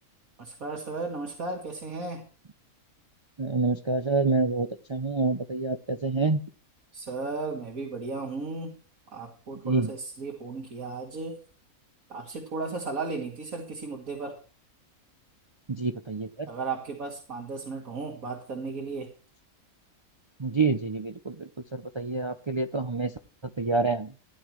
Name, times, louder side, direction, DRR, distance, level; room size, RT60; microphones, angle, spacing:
voice 1, 0.4-2.3 6.9-8.8 9.1-11.4 12.1-14.4 16.5-19.1, right 3 dB, 70° right, -1 dB, 2.6 m, -35 dB
voice 2, 3.4-6.4 9.6-9.9 15.7-16.5 20.4-23.1 23.4-24.1, right 3 dB, 50° right, 7 dB, 0.3 m, -27 dB
15.5 x 10.0 x 3.1 m, 0.38 s
omnidirectional pair, 1.5 m